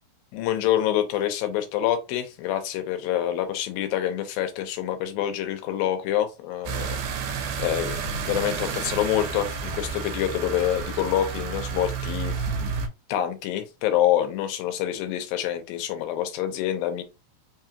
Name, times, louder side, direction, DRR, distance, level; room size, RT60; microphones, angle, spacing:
voice 1, 0.3-7.0 7.6-12.4 13.1-17.0, left 11 dB, 80° left, 2.3 m, -26 dB
sound 1, 6.7-12.9, right 5 dB, 80° right, 2.5 m, -31 dB
5.6 x 2.3 x 2.8 m
omnidirectional pair, 4.2 m